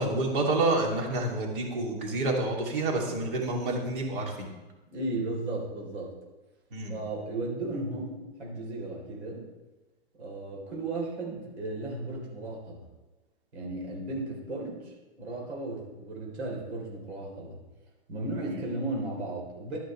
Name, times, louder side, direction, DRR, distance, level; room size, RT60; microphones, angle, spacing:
voice 1, 0.0-4.5 6.7-6.9 18.5-18.6, right 2 dB, 50° right, 0 dB, 2.9 m, -28 dB
voice 2, 4.9-6.1 6.9-9.5 10.2-12.8 13.5-17.6 18.1-19.8, right 2 dB, 75° right, -2 dB, 3.7 m, -35 dB
12.0 x 10.0 x 3.3 m, 1.1 s
hypercardioid pair, 160°, 33 cm